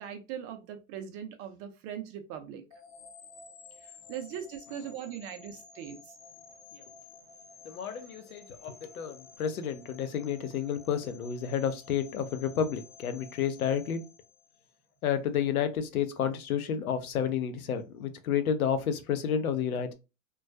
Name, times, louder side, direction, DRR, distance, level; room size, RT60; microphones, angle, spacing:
voice 1, 0.0-2.6 3.8-6.1, right 9 dB, 35° right, 0.5 m, -40 dB
sound 1, 2.7-14.8, left 5 dB, 35° left, 0.7 m, -53 dB
voice 2, 7.6-14.0 15.0-19.9, left 8 dB, 85° left, 0.6 m, -31 dB
2.2 x 2.2 x 2.6 m
hypercardioid pair, 105°, 41 cm